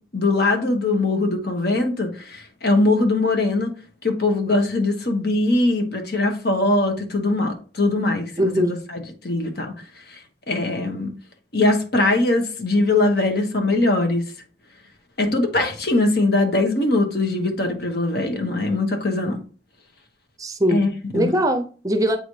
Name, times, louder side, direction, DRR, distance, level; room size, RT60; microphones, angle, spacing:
voice 1, 0.1-3.7 4.0-9.7 10.1-10.2 10.5-11.1 11.5-14.2 15.2-19.4 20.7-20.9 21.1-21.3, left 2 dB, 60° left, 1.2 m, -21 dB
voice 2, 8.4-8.8 20.4-22.2, equal, 20° right, 0.6 m, -21 dB
8.0 x 4.0 x 3.2 m
head